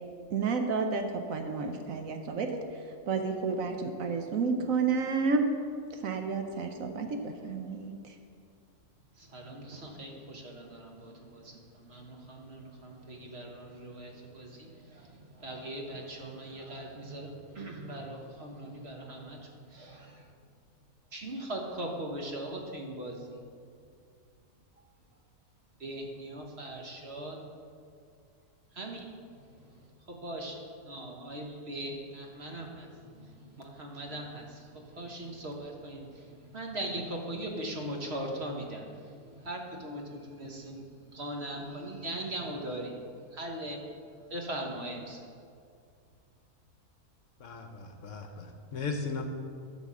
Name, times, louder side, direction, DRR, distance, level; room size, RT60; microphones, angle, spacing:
voice 1, 0.3-2.6 3.1-5.5 5.9-8.1, right 4 dB, 65° right, 5 dB, 1.0 m, -31 dB
voice 2, 9.1-20.3 21.1-23.4 25.8-27.4 28.7-43.0 43.3-43.8 44.2-45.3, right 1 dB, 45° right, 1 dB, 1.3 m, -40 dB
voice 3, 47.4-49.2, left 4 dB, 60° left, 4 dB, 1.1 m, -37 dB
11.5 x 4.1 x 7.4 m, 2.3 s
omnidirectional pair, 1.6 m